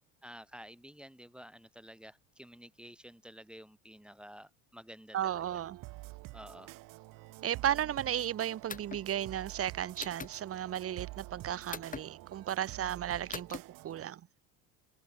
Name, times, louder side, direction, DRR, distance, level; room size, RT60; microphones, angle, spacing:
voice 1, 0.2-5.6 6.3-6.7, equal, 5° right, 2.8 m, -51 dB
voice 2, 5.1-5.8 7.4-14.2, right 11 dB, 40° right, 1.2 m, -34 dB
sound 1, 5.2-14.1, right 21 dB, 65° right, 1.3 m, -48 dB
sound 2, 8.7-9.0 10.0-10.3 11.7-12.0 13.3-13.6, left 5 dB, 20° left, 2.4 m, -41 dB
supercardioid pair, 95°, 36 cm